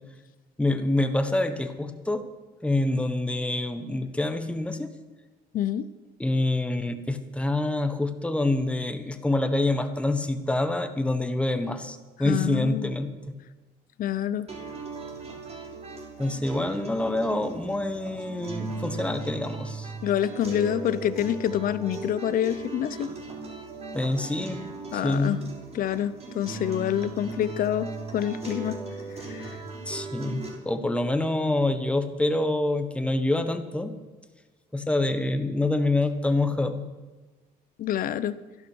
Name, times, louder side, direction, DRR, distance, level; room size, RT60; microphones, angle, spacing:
voice 1, 0.6-2.3 2.6-4.9 6.2-13.1 16.2-19.9 23.9-24.6 24.9-25.4 29.9-34.0 34.7-36.8, left 2 dB, 5° left, 8 dB, 1.3 m, -26 dB
voice 2, 5.5-5.9 12.2-12.9 14.0-14.5 20.0-23.1 24.9-25.4 25.7-28.8 29.2-29.6 37.8-38.4, left 10 dB, 55° left, 15 dB, 0.7 m, -27 dB
sound 1, 14.5-30.5, right 3 dB, 40° right, 5.9 m, -38 dB
13.5 x 11.5 x 6.3 m, 1.3 s
cardioid pair, 110°, 17 cm